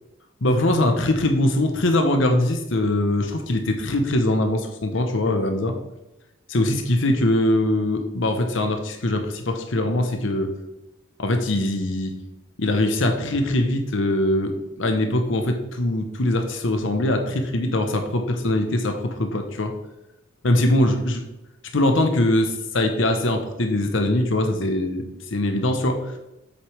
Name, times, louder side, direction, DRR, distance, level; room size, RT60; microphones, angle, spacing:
voice 1, 0.4-5.7 6.5-10.5 11.2-12.2 12.6-19.7 20.4-21.2 21.7-26.2, left 1 dB, 65° left, 5 dB, 0.9 m, -22 dB
8.0 x 6.6 x 3.3 m, 0.94 s
head